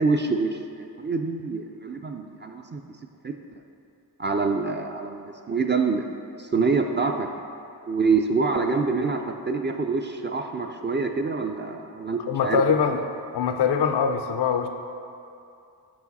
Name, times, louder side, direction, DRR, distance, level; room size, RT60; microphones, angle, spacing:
voice 1, 0.0-2.8 3.2-3.3 4.2-6.1 6.4-7.3 7.9-12.6, right 4 dB, 30° right, 4 dB, 0.4 m, -26 dB
voice 2, 12.3-13.1 13.3-14.7, left 6 dB, 75° left, 7 dB, 0.5 m, -23 dB
5.8 x 4.8 x 4.1 m, 2.6 s
cardioid pair, 50°, 40 cm